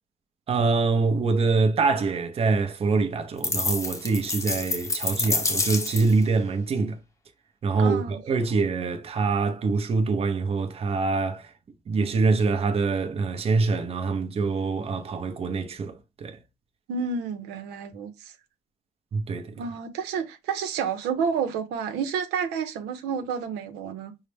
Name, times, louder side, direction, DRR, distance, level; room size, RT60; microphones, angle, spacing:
voice 1, 0.5-7.0 7.6-11.5 11.9-16.4 19.1-19.5, right 4 dB, 35° right, 0.7 m, -25 dB
sound 1, 3.4-6.2, left 3 dB, 20° left, 0.7 m, -28 dB
voice 2, 7.7-8.2 16.9-18.3 19.6-24.1, right 6 dB, 90° right, 0.7 m, -30 dB
5.5 x 2.1 x 3.3 m
cardioid pair, 110°, 17 cm